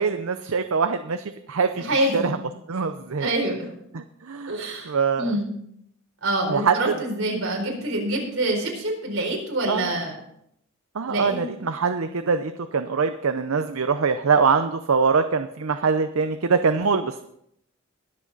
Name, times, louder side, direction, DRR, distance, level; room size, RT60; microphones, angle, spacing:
voice 1, 0.0-2.4 2.7-3.3 3.9-4.6 4.8-5.3 6.5-6.9 9.7-9.9 10.9-17.2, right 5 dB, 90° right, 9 dB, 0.7 m, -23 dB
voice 2, 1.8-2.4 3.2-3.7 4.5-5.5 6.2-10.2 11.1-11.5, right 1 dB, 75° right, 0 dB, 4.3 m, -26 dB
21.5 x 7.5 x 4.0 m, 0.75 s
head